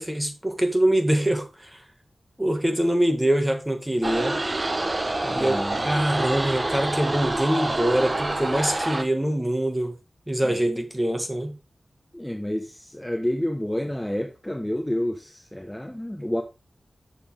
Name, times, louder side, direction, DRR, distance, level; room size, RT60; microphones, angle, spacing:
voice 1, 0.0-1.8 2.4-4.4 5.2-10.0 10.3-11.6, right 1 dB, 10° right, 1.8 m, -24 dB
sound 1, 4.0-9.0, right 2 dB, 35° right, 1.1 m, -27 dB
voice 2, 5.3-5.9 10.4-10.6 12.1-16.4, left 1 dB, 10° left, 0.9 m, -29 dB
7.1 x 6.9 x 3.6 m
wide cardioid pair, 65°, 0 cm